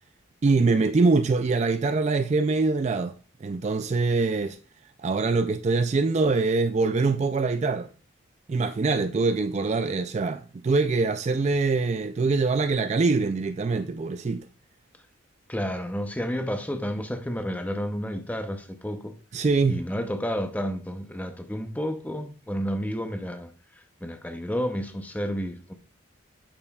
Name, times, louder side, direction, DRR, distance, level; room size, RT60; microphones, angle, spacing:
voice 1, 0.4-3.1 3.4-4.6 5.0-7.9 8.5-14.5 19.3-19.8, right 3 dB, 30° right, 0.3 m, -24 dB
voice 2, 15.5-19.1 19.6-23.5 24.0-25.7, equal, 5° left, 0.6 m, -31 dB
8.6 x 6.6 x 2.3 m
head